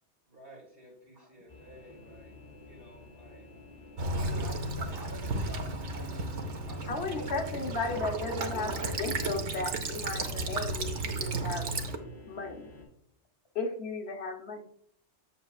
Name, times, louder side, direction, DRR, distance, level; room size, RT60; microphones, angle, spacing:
voice 1, 0.3-2.4 2.7-3.5 4.1-4.7, right 1 dB, 55° right, 0 dB, 1.9 m, -54 dB
sound 1, 1.5-12.8, left 2 dB, 35° left, 3.0 m, -51 dB
Child speech kid speaking / Bird vocalization bird call bird song / Stream, 4.0-12.0, right 2 dB, 85° right, 1.2 m, -34 dB
voice 2, 4.1-7.3 7.8-9.0, equal, 20° right, 1 dB, 1.7 m, -46 dB
voice 3, 6.9-11.7 12.3-12.7 13.5-14.6, left 3 dB, 65° left, 4 dB, 1.2 m, -35 dB
8.0 x 7.3 x 2.4 m, 0.68 s
omnidirectional pair, 1.2 m